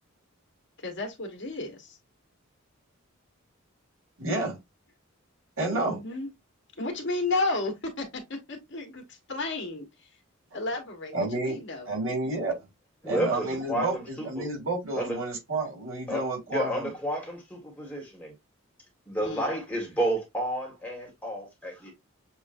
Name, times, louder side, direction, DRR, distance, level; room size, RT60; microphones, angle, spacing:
voice 1, 0.8-2.0 5.7-6.3 6.8-8.2 8.5-9.0 9.3-9.9 10.5-11.9 19.2-19.5, left 2 dB, 55° left, 1.6 m, -32 dB
voice 2, 4.2-4.6 5.6-6.0 11.1-12.5 13.1-16.9, right 2 dB, 75° right, 2.5 m, -30 dB
voice 3, 13.0-14.5 14.9-15.2 16.1-18.3 19.1-21.9, right 1 dB, 5° left, 1.7 m, -31 dB
7.2 x 2.6 x 2.6 m
head